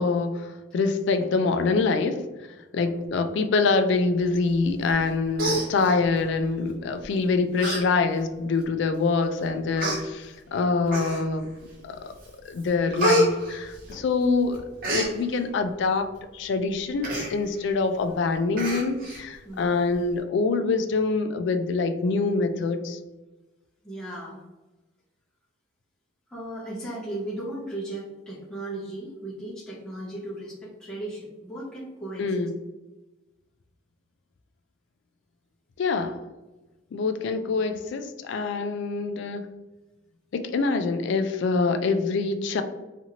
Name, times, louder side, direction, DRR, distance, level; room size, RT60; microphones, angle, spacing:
voice 1, 0.0-2.2 2.7-11.5 11.8-12.1 12.4-16.1 16.3-23.0 32.2-32.5 35.8-36.2 36.9-39.4 40.3-42.6, left 4 dB, 60° left, 8 dB, 0.3 m, -25 dB
voice 2, 2.7-3.1 19.4-19.9 23.8-24.4 26.3-32.5, right 1 dB, 5° left, -9 dB, 0.7 m, -36 dB
Human voice, 4.9-5.1 5.4-6.3 7.0-7.2 7.6-7.8 8.2-8.3 9.1-9.2 9.8-10.0 10.9-11.4 11.9-12.3 12.6-14.3 14.5-15.1 17.0-17.3 17.7-17.8 18.1-18.2 18.6-19.2 19.6-19.7, right 1 dB, 45° right, 0.8 m, -27 dB
2.8 x 2.5 x 2.8 m, 1.1 s
head